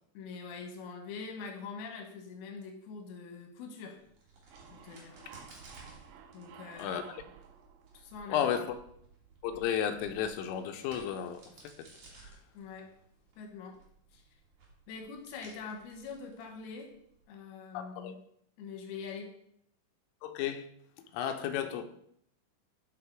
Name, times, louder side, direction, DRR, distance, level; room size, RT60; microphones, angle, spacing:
voice 1, 0.1-4.0 4.7-5.2 6.3-7.1 7.9-8.4 12.5-12.9 13.4-13.8 14.1-14.2 14.9-16.9 17.3-18.2 18.6-19.3, left 5 dB, 70° left, 2.4 m, -44 dB
Crack, 4.0-17.2, right 3 dB, 65° right, 1.6 m, -57 dB
sound 1, 4.5-9.0, right 8 dB, 85° right, 2.6 m, -54 dB
voice 2, 6.8-7.2 8.3-8.8 9.4-11.9 12.2-12.4 17.7-18.2 20.2-20.7 21.1-21.8, left 9 dB, 90° left, 3.2 m, -33 dB
10.5 x 3.7 x 4.5 m
omnidirectional pair, 5.7 m